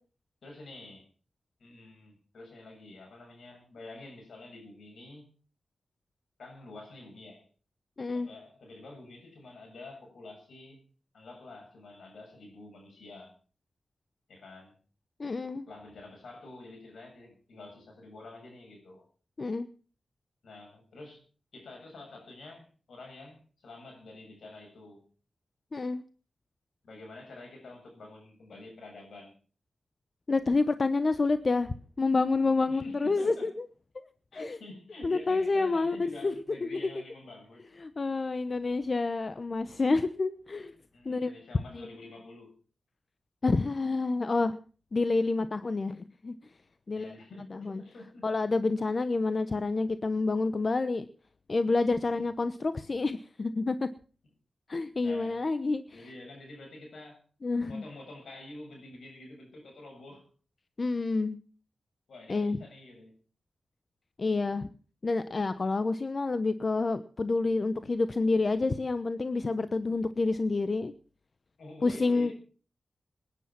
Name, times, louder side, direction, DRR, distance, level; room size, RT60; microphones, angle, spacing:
voice 1, 0.4-1.1 1.6-5.3 6.4-7.5 8.1-10.8 11.1-13.3 14.3-14.8 15.7-19.1 20.4-21.2 21.5-25.1 26.8-29.3 32.7-33.5 34.3-37.6 40.9-42.5 46.9-48.3 52.0-52.3 55.0-55.4 55.9-57.2 57.5-60.3 62.1-63.1 71.6-72.3, left 2 dB, 85° left, 7.3 m, -48 dB
voice 2, 8.0-8.3 15.2-15.7 19.4-19.7 25.7-26.0 30.3-33.7 34.3-34.6 35.0-36.3 36.6-36.8 37.8-40.7 41.0-41.3 41.7-41.9 43.4-44.6 44.9-46.4 46.9-47.1 47.5-47.8 48.2-51.1 51.5-53.9 54.7-56.0 57.4-57.8 60.8-61.4 62.3-62.6 64.2-64.7 65.0-70.9 71.8-72.3, left 3 dB, 50° left, 0.9 m, -28 dB
20.0 x 10.0 x 5.9 m
cardioid pair, 45°, 0 cm